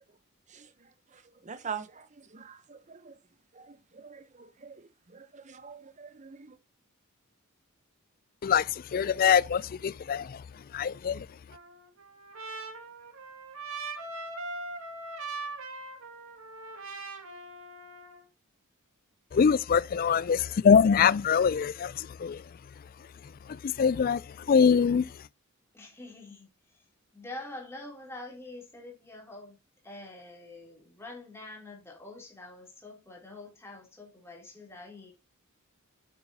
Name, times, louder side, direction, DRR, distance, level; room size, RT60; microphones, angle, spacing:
voice 1, 0.5-3.2 3.5-6.6, right 6 dB, 35° right, 0.8 m, -45 dB
voice 2, 8.4-10.4 10.7-11.3 19.3-22.4 23.5-24.2 24.5-25.1, left 6 dB, 40° left, 0.3 m, -24 dB
Trumpet, 11.5-18.2, right 3 dB, 65° right, 2.3 m, -41 dB
voice 3, 25.7-26.9 27.1-29.6 29.8-35.1, left 2 dB, 10° left, 3.1 m, -46 dB
8.7 x 8.3 x 2.8 m
head